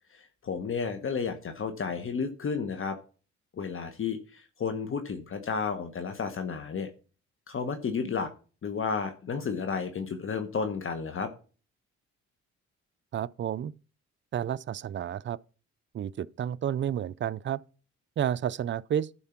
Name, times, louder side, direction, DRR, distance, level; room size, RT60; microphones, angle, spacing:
voice 1, 0.1-3.0 3.5-6.9 7.5-8.3 8.6-11.3, left 5 dB, 45° left, 1.2 m, -32 dB
voice 2, 13.1-13.7 14.3-15.4 15.9-17.6 18.2-19.1, right 9 dB, 40° right, 0.4 m, -31 dB
11.0 x 4.5 x 5.8 m
cardioid pair, 90°, 30 cm